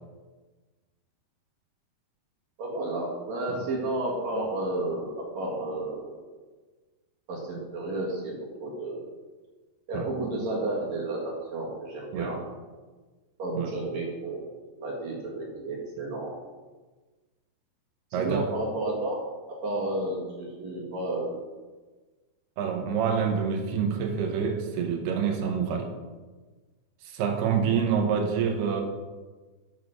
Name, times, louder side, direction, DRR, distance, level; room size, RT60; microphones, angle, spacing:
voice 1, 2.6-6.3 7.3-9.0 9.9-12.4 13.4-14.4 14.7-16.4 18.1-19.2 19.6-21.4, right 2 dB, 50° right, -3 dB, 2.7 m, -32 dB
voice 2, 18.1-18.5 22.6-25.9 27.0-28.8, right 6 dB, 75° right, 4 dB, 3.0 m, -27 dB
7.7 x 7.2 x 6.3 m, 1.3 s
omnidirectional pair, 4.8 m